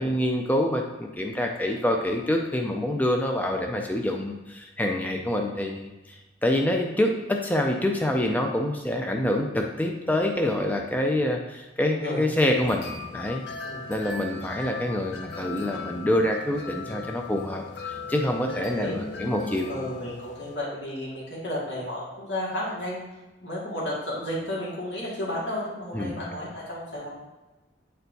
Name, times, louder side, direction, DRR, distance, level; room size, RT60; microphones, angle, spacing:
voice 1, 0.0-13.4 13.9-19.7 25.9-26.2, left 1 dB, 10° left, 2 dB, 0.4 m, -26 dB
voice 2, 11.9-12.3 13.6-14.0 16.8-17.1 18.4-23.0 23.4-27.1, left 1 dB, 90° left, -7 dB, 2.1 m, -33 dB
sound 1, 12.5-20.6, left 4 dB, 70° left, 0.6 m, -39 dB
9.0 x 4.4 x 2.7 m, 1.1 s
head